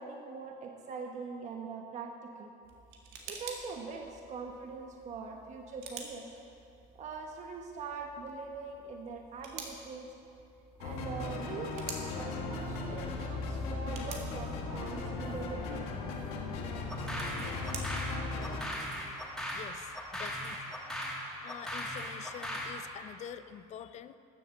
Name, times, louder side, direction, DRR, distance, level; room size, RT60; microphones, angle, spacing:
voice 1, 0.0-2.5 3.3-6.3 6.9-10.1 10.8-15.9, right 4 dB, 45° right, 2 dB, 1.2 m, -43 dB
sound 1, 2.6-20.6, right 5 dB, 75° right, 1.9 m, -51 dB
sound 2, 10.8-18.6, left 3 dB, 80° left, 1.8 m, -37 dB
sound 3, 16.9-22.8, equal, 5° left, 2.0 m, -39 dB
voice 2, 19.5-20.6 21.4-24.2, left 9 dB, 40° left, 12 dB, 0.6 m, -46 dB
13.5 x 8.0 x 6.6 m, 2.6 s
supercardioid pair, 110°, 17 cm